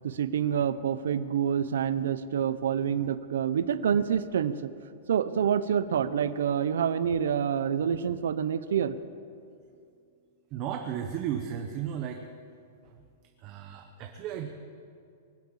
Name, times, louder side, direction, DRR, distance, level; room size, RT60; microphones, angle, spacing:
voice 1, 0.0-4.7 5.1-8.9, right 8 dB, 80° right, 13 dB, 0.8 m, -27 dB
voice 2, 10.5-12.2 13.4-14.5, right 9 dB, 30° right, 4 dB, 0.9 m, -34 dB
23.5 x 7.9 x 7.3 m, 2.4 s
supercardioid pair, 170°, 0 cm